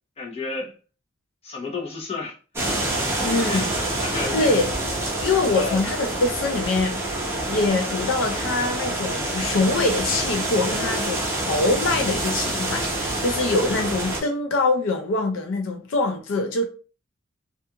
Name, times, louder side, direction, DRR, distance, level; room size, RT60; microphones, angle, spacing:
voice 1, 0.2-0.7 1.4-2.4 2.7-4.6 5.5-5.8, left 3 dB, 30° left, 0.7 m, -32 dB
sound 1, 2.5-14.2, right 1 dB, 15° right, 0.7 m, -27 dB
voice 2, 3.2-3.7 4.3-4.7 5.2-7.0 7.5-16.7, left 3 dB, 70° left, 0.4 m, -24 dB
2.4 x 2.3 x 2.8 m
head